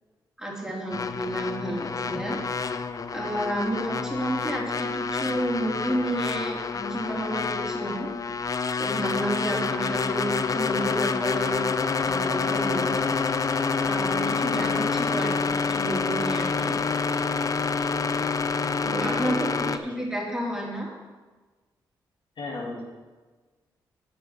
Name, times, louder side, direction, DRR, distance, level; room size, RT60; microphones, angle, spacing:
voice 1, 0.4-2.4 3.1-8.1 8.8-11.6 12.0-12.9 13.8-16.8 18.8-19.5 19.8-20.9, right 1 dB, 5° right, -3 dB, 3.6 m, -31 dB
sound 1, 0.9-19.8, left 5 dB, 40° left, 0.6 m, -27 dB
voice 2, 19.0-19.9 22.4-22.8, left 2 dB, 65° left, -3 dB, 3.0 m, -35 dB
8.5 x 7.9 x 6.0 m, 1.3 s
supercardioid pair, 55°, 9 cm